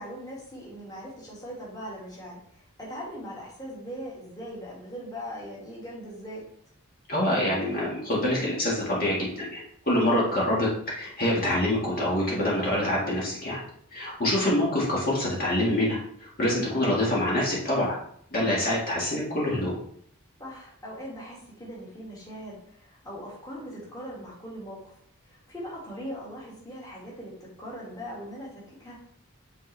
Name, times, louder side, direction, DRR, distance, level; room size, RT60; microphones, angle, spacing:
voice 1, 0.0-6.4 20.4-24.9 25.2-29.0, equal, 15° left, -6 dB, 2.2 m, -40 dB
voice 2, 7.1-13.6 13.9-18.0 18.3-19.7, left 1 dB, 40° left, -6 dB, 1.9 m, -26 dB
9.0 x 4.2 x 3.4 m, 0.65 s
head